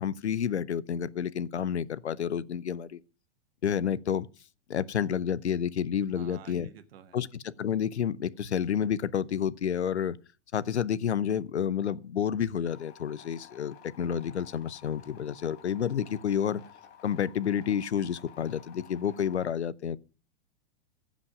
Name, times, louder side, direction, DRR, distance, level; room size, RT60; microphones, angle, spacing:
voice 1, 0.0-3.0 3.6-4.3 4.7-6.7 7.1-10.2 10.5-16.6 17.0-20.0, left 8 dB, 85° left, 0.7 m, -30 dB
voice 2, 6.1-7.2, right 9 dB, 60° right, 1.8 m, -50 dB
sound 1, 12.7-19.5, left 8 dB, 30° left, 3.6 m, -53 dB
15.0 x 5.2 x 6.2 m
hypercardioid pair, 105°, 33 cm